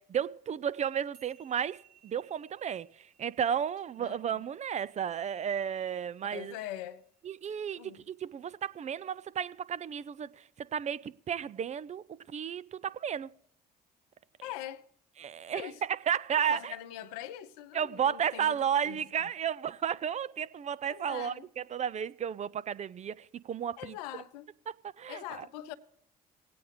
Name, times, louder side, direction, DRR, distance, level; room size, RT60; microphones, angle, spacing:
voice 1, 0.0-6.5 7.2-13.3 15.2-16.7 17.7-23.9 25.0-25.5, right 8 dB, 35° right, 0.5 m, -33 dB
sound 1, 1.1-7.7, right 9 dB, 70° right, 3.8 m, -65 dB
voice 2, 4.0-4.4 6.3-7.1 7.8-8.0 14.4-14.8 15.5-15.8 16.5-18.6 18.8-19.0 20.9-21.5 23.8-24.5 25.1-25.7, left 12 dB, 70° left, 0.7 m, -42 dB
20.0 x 8.5 x 3.3 m
hypercardioid pair, 55°, 20 cm